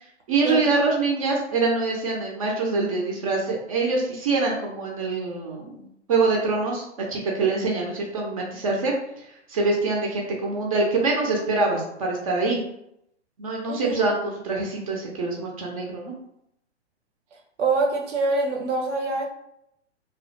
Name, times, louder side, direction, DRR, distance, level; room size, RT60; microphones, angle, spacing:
voice 1, 0.3-6.8 7.1-12.6 13.4-16.1, right 3 dB, 30° right, -1 dB, 0.4 m, -25 dB
voice 2, 17.6-19.2, right 3 dB, 80° right, 0 dB, 0.6 m, -24 dB
2.4 x 2.1 x 2.5 m, 0.78 s
figure-of-eight pair, 125°, 35 cm